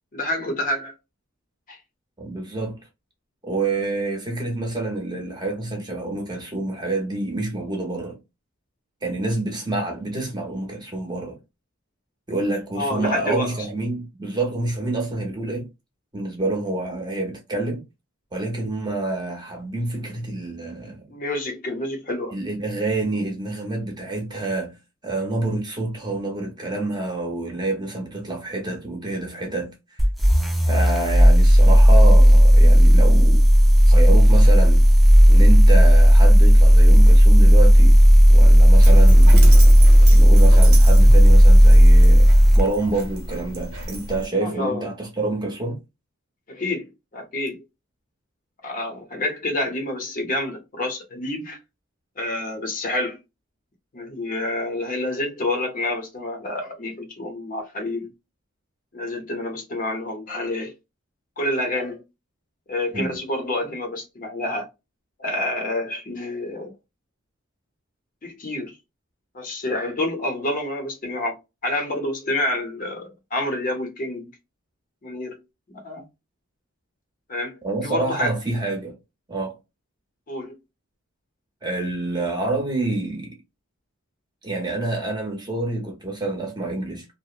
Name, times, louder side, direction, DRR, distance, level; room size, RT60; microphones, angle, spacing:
voice 1, 0.1-0.9 1.7-1.8 12.7-13.7 21.1-22.3 44.4-44.9 46.5-47.6 48.6-51.6 52.2-53.2 53.9-58.1 58.9-60.7 61.4-62.0 62.7-64.7 65.2-66.7 68.2-68.8 69.3-71.3 71.6-74.3 75.0-75.4 75.7-76.0 77.3-77.6 77.8-78.3 80.3-80.6, left 1 dB, 40° left, 0.6 m, -28 dB
voice 2, 2.2-2.8 3.4-8.2 9.0-11.4 12.3-15.7 16.1-17.8 18.3-21.0 22.3-24.8 25.0-30.0 30.7-33.5 33.9-34.9 35.3-38.0 38.3-39.6 40.1-42.3 42.6-45.8 62.9-63.2 77.6-79.0 79.3-79.6 81.6-83.3 84.4-87.0, right 2 dB, 20° right, 0.7 m, -27 dB
sound 1, 30.0-42.7, equal, ahead, 0.3 m, -11 dB
Dog, 38.8-44.3, right 1 dB, 85° right, 0.9 m, -31 dB
2.7 x 2.0 x 2.3 m
head